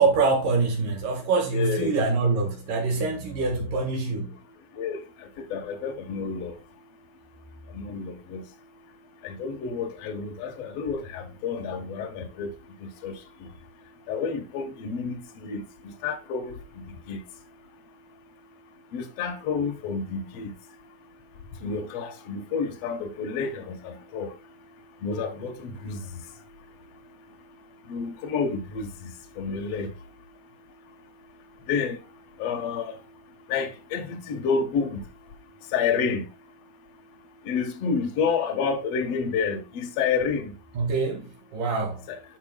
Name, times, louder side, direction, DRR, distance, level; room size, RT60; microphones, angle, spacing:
voice 1, 0.0-4.4 40.7-42.1, right 4 dB, 60° right, 3.1 m, -25 dB
voice 2, 1.5-1.9 4.7-6.6 7.7-8.4 9.2-12.5 12.8-13.5 14.1-17.2 18.9-20.5 21.6-24.3 25.0-26.2 27.9-29.9 31.7-32.0 32.4-33.0 33.5-35.0 35.7-36.3 37.4-40.6 42.1-42.2, left 5 dB, 60° left, 1.8 m, -30 dB
14.0 x 5.3 x 2.3 m
omnidirectional pair, 4.6 m